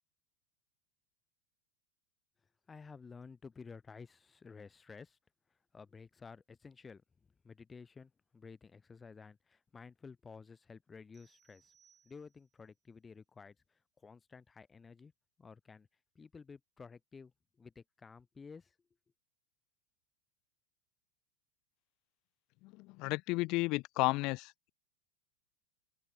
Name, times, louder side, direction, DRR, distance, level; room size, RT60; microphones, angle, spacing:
voice 1, 2.7-5.2 5.7-7.0 7.4-11.7 12.0-15.1 15.4-15.9 16.1-17.3 17.6-18.7, left 5 dB, 20° left, 1.4 m, -53 dB
sound 1, 11.1-12.7, right 8 dB, 30° right, 4.1 m, -70 dB
voice 2, 22.6-24.7, left 23 dB, 55° left, 0.5 m, -33 dB
open air
hypercardioid pair, 100°, 0 cm